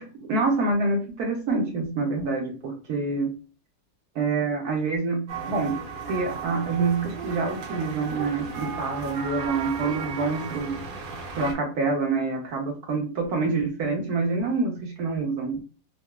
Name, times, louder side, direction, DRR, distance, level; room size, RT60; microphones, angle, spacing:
voice 1, 0.0-3.3 4.1-10.8 11.3-15.6, right 3 dB, 65° right, 1 dB, 1.0 m, -27 dB
sound 1, 5.3-11.5, right 5 dB, 85° right, 1.4 m, -35 dB
3.8 x 2.2 x 2.2 m, 0.36 s
omnidirectional pair, 2.0 m